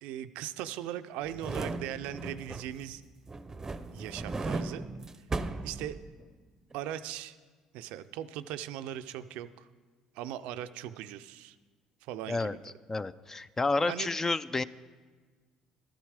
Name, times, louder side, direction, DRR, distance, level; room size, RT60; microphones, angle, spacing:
voice 1, 0.0-3.0 3.9-4.8 5.4-6.0 6.7-7.4 7.7-9.7 10.1-11.5 12.0-12.6 13.9-14.1, right 12 dB, 75° right, 12 dB, 0.4 m, -39 dB
sound 1, 1.2-2.9 3.3-6.4 6.7-6.8, right 3 dB, 25° right, 0.6 m, -37 dB
voice 2, 12.9-14.6, left 3 dB, 20° left, 16 dB, 0.4 m, -30 dB
12.5 x 10.5 x 4.8 m, 1.4 s
supercardioid pair, 70°, 2 cm